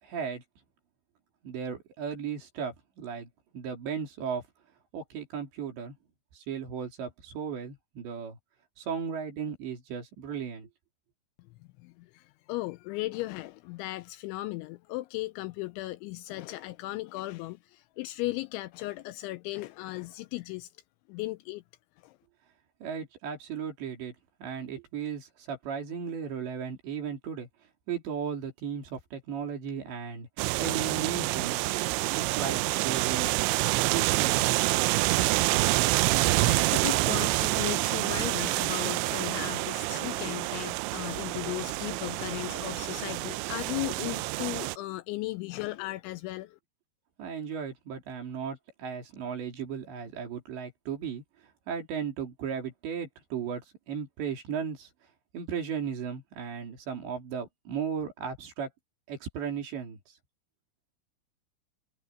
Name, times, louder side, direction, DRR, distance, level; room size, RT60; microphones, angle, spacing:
voice 1, 0.0-0.4 1.4-4.4 4.9-6.0 6.3-8.4 8.8-10.7 22.8-24.1 24.4-27.5 27.9-30.3 30.6-31.6 32.1-33.4 33.9-34.5 47.2-51.2 51.7-54.9 55.3-58.7 59.1-60.1, right 7 dB, 65° right, 5.8 m, -35 dB
voice 2, 11.8-20.7 21.1-21.6 22.0-22.2 34.9-35.1 35.5-35.8 36.4-46.6, left 19 dB, 80° left, 2.8 m, -36 dB
sound 1, 30.4-44.8, right 21 dB, 85° right, 2.6 m, -27 dB
omnidirectional pair, 5.7 m